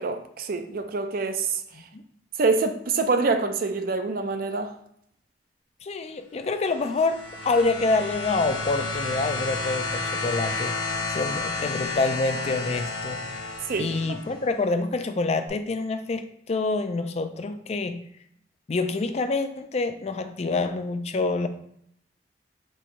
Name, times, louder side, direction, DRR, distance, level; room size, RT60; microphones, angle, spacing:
voice 1, 0.0-1.6 2.4-4.7 13.7-14.0, right 4 dB, 55° right, 0.5 m, -25 dB
voice 2, 5.8-10.8 11.1-13.2 13.8-18.0 18.7-21.5, left 3 dB, 35° left, 0.4 m, -27 dB
sound 1, 6.6-14.4 15.5-15.6, left 3 dB, 80° left, 1.0 m, -31 dB
4.5 x 2.7 x 4.2 m
head